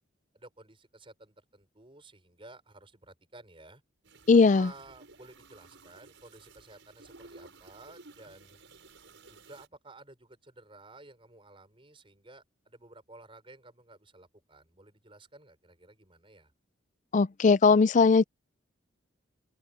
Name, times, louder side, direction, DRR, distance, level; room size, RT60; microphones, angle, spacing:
voice 1, 0.3-3.8 4.5-8.6 9.3-16.5, right 2 dB, 30° right, 4.9 m, -53 dB
sound 1, 4.0-9.7, right 3 dB, 85° right, 5.8 m, -55 dB
voice 2, 4.3-4.7 17.1-18.2, left 4 dB, 40° left, 0.4 m, -19 dB
open air
head